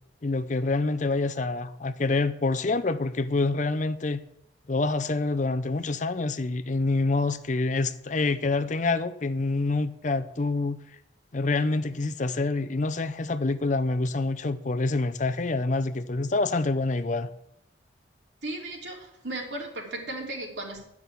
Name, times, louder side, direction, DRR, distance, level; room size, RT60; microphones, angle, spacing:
voice 1, 0.2-4.2 4.7-10.8 11.3-17.3, left 3 dB, 40° left, 0.6 m, -26 dB
voice 2, 18.4-20.8, right 2 dB, 70° right, 3.2 m, -35 dB
11.5 x 6.0 x 8.3 m
head